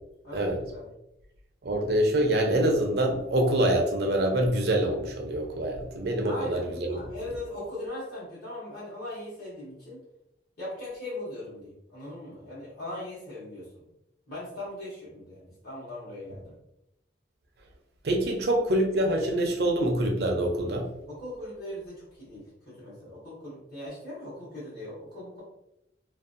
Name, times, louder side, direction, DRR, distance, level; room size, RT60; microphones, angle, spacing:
voice 1, 0.2-0.9 6.2-10.0 10.6-13.8 14.3-16.5 21.1-25.4, left 1 dB, 55° left, -10 dB, 1.0 m, -40 dB
voice 2, 1.6-6.6 6.9-7.0 18.0-20.9, right 1 dB, 65° right, 2 dB, 0.5 m, -25 dB
2.6 x 2.2 x 2.5 m, 0.85 s
head